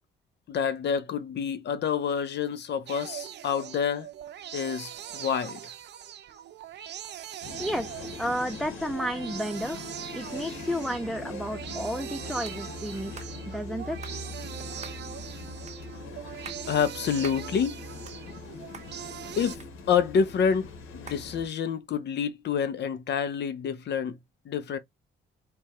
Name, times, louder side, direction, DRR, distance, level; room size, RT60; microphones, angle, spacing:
voice 1, 0.5-4.1 4.5-5.6 13.1-13.2 16.7-17.8 19.4-19.6 19.9-24.2 24.5-24.8, left 7 dB, 60° left, 0.8 m, -28 dB
sound 1, 2.9-19.6, right 10 dB, 60° right, 0.6 m, -41 dB
sound 2, 7.4-21.5, left 3 dB, 85° left, 1.5 m, -41 dB
voice 2, 7.6-9.9 10.1-13.1 13.5-14.0, equal, ahead, 0.5 m, -32 dB
sound 3, 12.4-12.6 13.1-13.3 14.0-14.2 14.8-15.0 15.7-15.8 16.3-16.6 17.2-17.4 17.8-18.5 18.7-18.9 19.6-20.2 21.1-21.2, right 5 dB, 35° right, 1.2 m, -45 dB
3.4 x 3.0 x 4.4 m
cardioid pair, 90°, 20 cm